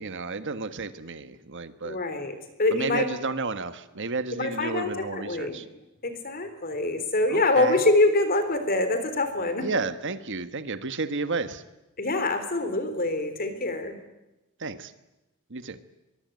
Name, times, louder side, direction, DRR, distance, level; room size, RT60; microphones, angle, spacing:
voice 1, 0.0-2.0 2.7-5.6 7.3-7.8 9.6-11.6 14.6-14.9 15.5-15.8, right 3 dB, 55° right, 11 dB, 1.4 m, -32 dB
voice 2, 1.8-3.1 4.4-5.6 6.0-9.7 12.0-13.9, left 2 dB, 40° left, 9 dB, 3.7 m, -25 dB
23.5 x 23.0 x 9.4 m, 0.99 s
head